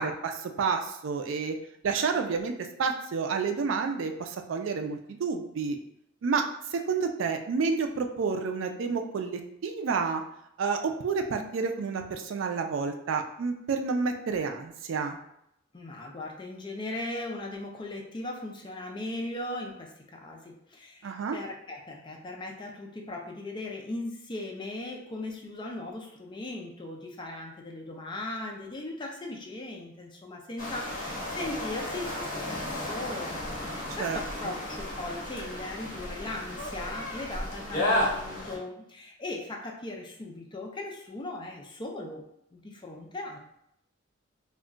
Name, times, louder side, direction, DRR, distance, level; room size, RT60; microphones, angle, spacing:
voice 1, 0.0-1.5 1.8-2.5 2.8-5.8 6.2-6.4 6.7-10.2 10.6-15.2 21.0-21.4 34.0-34.2 34.4-34.5, right 5 dB, 75° right, 5 dB, 0.4 m, -29 dB
voice 2, 15.7-42.2 42.5-43.4, left 2 dB, 25° left, 1 dB, 0.4 m, -38 dB
sound 1, 30.6-38.6, left 1 dB, 45° left, 1.1 m, -33 dB
2.3 x 2.1 x 3.7 m, 0.76 s
head